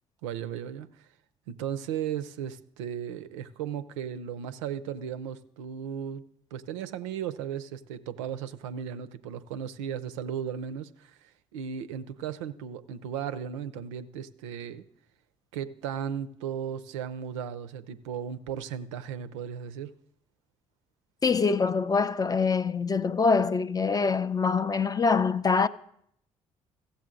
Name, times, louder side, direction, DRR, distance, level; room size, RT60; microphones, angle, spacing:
voice 1, 0.2-1.1 1.5-6.2 6.5-14.8 15.5-19.9, right 8 dB, 75° right, 0.4 m, -36 dB
voice 2, 21.2-25.7, left 5 dB, 25° left, 0.4 m, -24 dB
15.5 x 7.1 x 3.7 m
hypercardioid pair, 50°, 16 cm